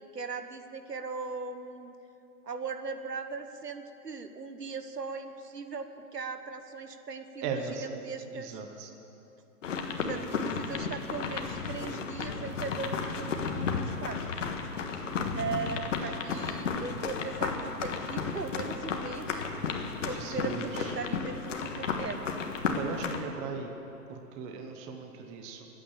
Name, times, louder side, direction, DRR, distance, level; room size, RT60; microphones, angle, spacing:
voice 1, 0.0-1.9 2.4-8.6 10.1-14.5 15.3-22.3, right 4 dB, 90° right, 8 dB, 1.3 m, -39 dB
voice 2, 7.4-7.8 8.3-8.9 20.1-20.9 22.7-23.7 24.1-25.7, right 5 dB, 15° right, 4 dB, 0.8 m, -38 dB
sound 1, 9.6-23.2, left 5 dB, 50° left, 1.5 m, -33 dB
22.0 x 9.0 x 7.0 m, 2.9 s
hypercardioid pair, 135°, 47 cm